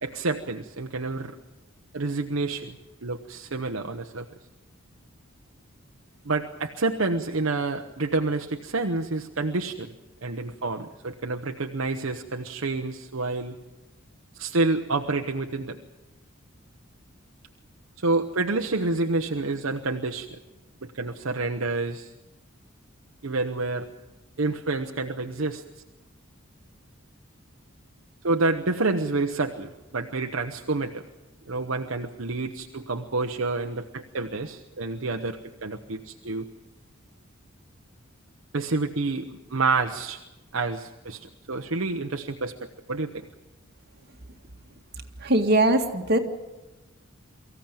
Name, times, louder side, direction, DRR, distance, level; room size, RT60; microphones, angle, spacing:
voice 1, 0.0-1.4 1.9-2.8 3.0-4.3 6.2-9.9 10.2-13.6 14.3-15.8 18.0-20.3 20.8-22.1 23.2-23.9 24.4-25.6 28.2-31.0 31.5-36.5 38.5-40.2 40.5-43.3, right 3 dB, 70° right, 5 dB, 0.9 m, -28 dB
voice 2, 45.2-46.2, right 1 dB, 50° right, 3 dB, 2.0 m, -21 dB
24.0 x 15.0 x 9.0 m, 1.1 s
head